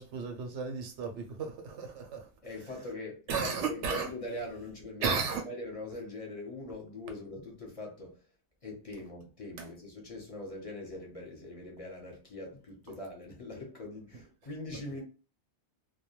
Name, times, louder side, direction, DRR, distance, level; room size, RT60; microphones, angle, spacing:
voice 1, 0.0-2.3 3.3-4.1 5.0-5.4 9.6-9.7, right 5 dB, 90° right, 0.9 m, -34 dB
voice 2, 2.4-5.1 5.4-8.2 8.6-15.0, left 2 dB, 35° left, 0.8 m, -42 dB
2.2 x 2.2 x 2.9 m
omnidirectional pair, 1.2 m